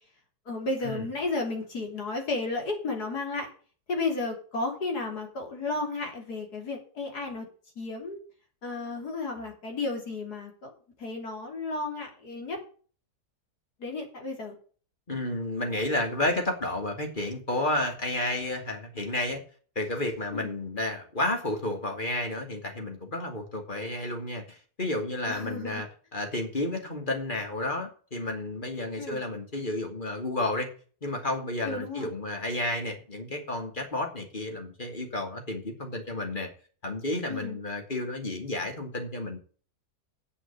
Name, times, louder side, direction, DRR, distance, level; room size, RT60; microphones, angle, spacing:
voice 1, 0.5-3.5 3.9-7.5 7.8-8.2 8.6-10.7 11.0-12.6 13.8-14.6 20.3-20.5 25.3-25.8 29.0-29.2 31.6-32.1 37.3-37.6, left 3 dB, 75° left, 2 dB, 3.7 m, -33 dB
voice 2, 15.1-19.4 19.8-25.9 26.1-30.7 31.0-36.5 36.8-39.4, left 1 dB, 30° left, 3 dB, 2.6 m, -31 dB
8.7 x 7.3 x 8.4 m, 0.41 s
omnidirectional pair, 1.7 m